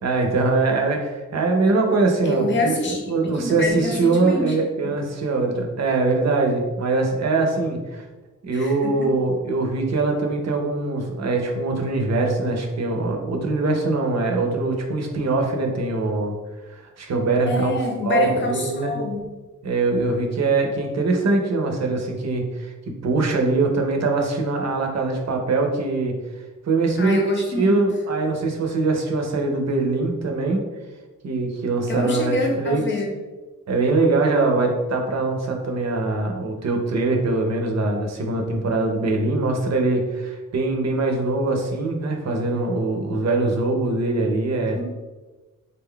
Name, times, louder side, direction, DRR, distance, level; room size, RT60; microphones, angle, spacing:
voice 1, 0.0-8.0 8.4-16.3 16.6-17.7 18.0-18.9 19.6-22.7 23.0-26.2 26.6-30.6 31.2-32.8 33.7-44.8, right 3 dB, 55° right, 2 dB, 0.6 m, -22 dB
voice 2, 2.2-3.0 3.3-4.5 4.8-4.9 8.5-9.2 17.5-19.2 27.0-27.8 31.9-33.1 44.7-44.8, left 2 dB, 35° left, 0 dB, 0.7 m, -26 dB
3.8 x 2.2 x 3.7 m, 1.2 s
wide cardioid pair, 165°, 32 cm